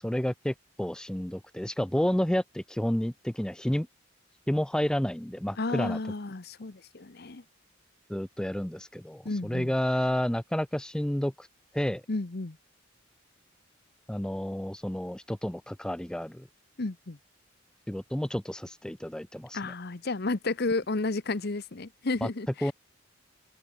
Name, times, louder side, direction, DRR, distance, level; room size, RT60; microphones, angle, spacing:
voice 1, 0.0-3.9 4.5-6.0 8.1-11.5 11.7-12.0 14.1-16.5 17.9-19.7 22.2-22.3 22.6-22.7, equal, 5° left, 0.4 m, -30 dB
voice 2, 5.6-7.4 9.2-9.7 12.1-12.6 16.8-17.2 19.5-22.7, left 3 dB, 50° left, 0.9 m, -32 dB
head